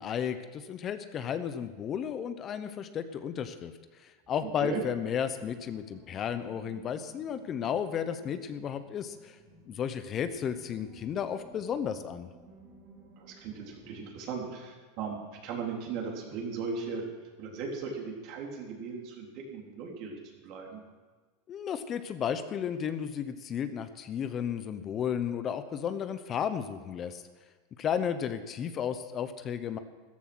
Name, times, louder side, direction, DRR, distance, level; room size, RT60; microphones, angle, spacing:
voice 1, 0.0-3.7 4.0-9.4 9.7-12.3 21.5-27.2 27.8-29.8, left 8 dB, 35° left, 11 dB, 0.9 m, -33 dB
sound 1, 4.2-14.2, right 2 dB, 35° right, 4.9 m, -55 dB
voice 2, 13.2-17.0 17.4-20.8, right 5 dB, 55° right, 0 dB, 3.6 m, -37 dB
14.0 x 12.0 x 6.2 m, 1.4 s
supercardioid pair, 130°, 0 cm